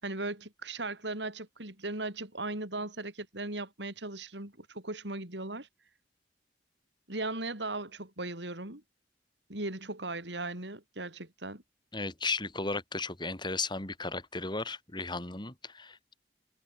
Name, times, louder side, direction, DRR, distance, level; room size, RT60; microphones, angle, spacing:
voice 1, 0.0-5.7 7.1-8.8 9.5-11.6, right 2 dB, 80° right, 5.4 m, -37 dB
voice 2, 11.9-16.1, left 3 dB, 25° left, 3.2 m, -35 dB
head